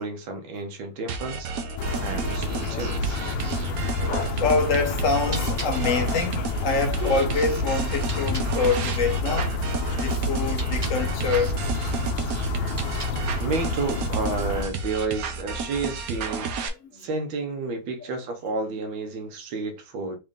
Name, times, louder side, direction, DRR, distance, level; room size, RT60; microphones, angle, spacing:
voice 1, 0.0-1.5 2.0-3.2 13.4-16.5 16.9-20.2, right 3 dB, 80° right, 1.7 m, -31 dB
sound 1, 1.1-16.7, right 4 dB, 65° right, 0.9 m, -32 dB
voice 2, 1.6-2.8 3.1-9.6 10.0-11.6 16.8-17.1, left 4 dB, 55° left, 1.0 m, -27 dB
sound 2, 1.8-14.6, left 2 dB, 75° left, 1.4 m, -28 dB
sound 3, 5.2-8.5 10.4-11.0 12.6-13.4, right 3 dB, 35° right, 0.6 m, -42 dB
4.2 x 2.5 x 3.5 m
omnidirectional pair, 2.1 m